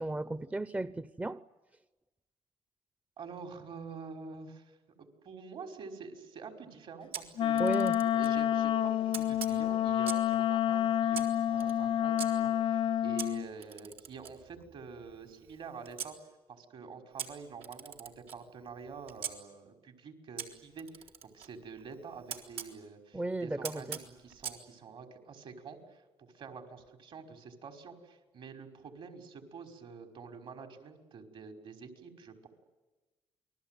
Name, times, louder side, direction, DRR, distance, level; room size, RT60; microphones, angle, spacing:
voice 1, 0.0-1.4 7.6-8.0 23.1-24.0, right 2 dB, 15° right, 0.8 m, -34 dB
voice 2, 3.2-7.7 8.0-16.2 16.5-32.5, right 5 dB, 60° right, 5.5 m, -47 dB
Camera, 7.1-8.4 9.1-10.4 11.1-12.3 13.2-16.1 17.2-19.3 20.4-22.7 23.6-24.6, right 7 dB, 80° right, 4.3 m, -44 dB
Wind instrument woodwind instrument, 7.4-13.5, left 11 dB, 65° left, 0.8 m, -29 dB
28.5 x 21.5 x 9.4 m
cardioid pair, 80°, 10 cm